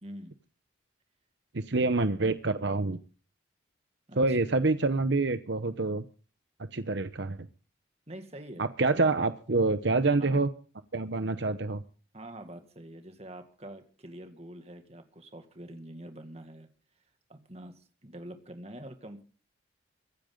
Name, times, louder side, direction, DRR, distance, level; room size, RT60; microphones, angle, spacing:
voice 1, 0.0-0.3 4.1-4.4 8.1-9.1 10.2-10.5 12.1-16.7 17.3-19.2, right 1 dB, 30° right, 7 dB, 2.0 m, -46 dB
voice 2, 1.5-3.0 4.2-6.0 6.7-7.4 8.6-10.5 10.9-11.8, right 3 dB, 65° right, 10 dB, 0.9 m, -27 dB
24.0 x 10.5 x 3.9 m, 0.40 s
head